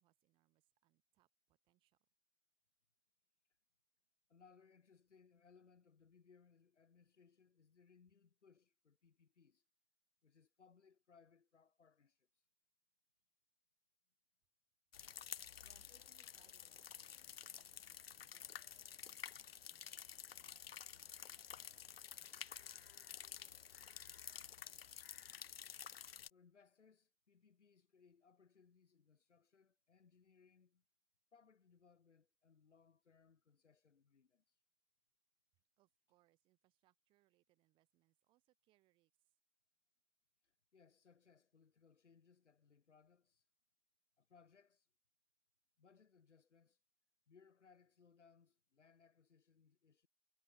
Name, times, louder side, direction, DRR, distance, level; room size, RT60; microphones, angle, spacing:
voice 1, 0.0-2.0 15.6-25.1 35.8-39.4, right 18 dB, 15° right, 3.0 m, -80 dB
voice 2, 4.3-9.6 10.2-12.3 26.3-30.8 31.3-34.5 40.4-43.4 44.2-44.9 45.8-46.8 47.3-50.1, left 6 dB, 75° left, 1.7 m, -69 dB
sound 1, 14.9-26.3, left 9 dB, 55° left, 0.5 m, -52 dB
hypercardioid pair, 155°, 36 cm